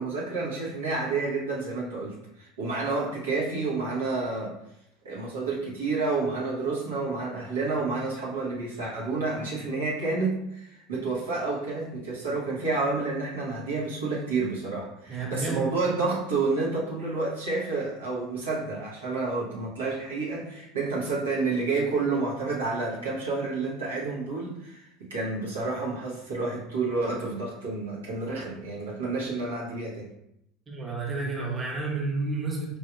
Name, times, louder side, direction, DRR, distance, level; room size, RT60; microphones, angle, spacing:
voice 1, 0.0-4.6 5.0-30.1, right 3 dB, 80° right, -6 dB, 0.9 m, -29 dB
voice 2, 15.1-15.7 30.7-32.8, right 3 dB, 25° right, -2 dB, 0.9 m, -31 dB
4.6 x 2.7 x 2.3 m, 0.80 s
figure-of-eight pair, 70°, 0 cm